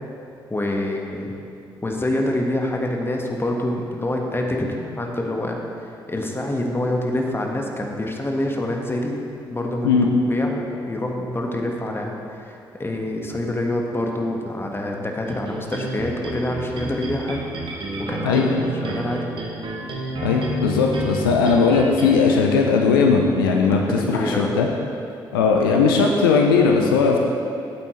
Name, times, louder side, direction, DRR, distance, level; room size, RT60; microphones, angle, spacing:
voice 1, 0.5-1.3 1.8-9.2 9.5-17.4 18.0-19.3 21.4-21.6 23.7-24.6 25.3-25.5, left 1 dB, 20° left, 1 dB, 1.5 m, -26 dB
sound 1, 15.3-22.2, right 2 dB, 45° right, 1.5 m, -30 dB
voice 2, 20.2-23.8 24.1-24.7 25.3-27.2, left 5 dB, 80° left, 1 dB, 0.6 m, -18 dB
13.0 x 8.6 x 3.2 m, 2.5 s
figure-of-eight pair, 40°, 11 cm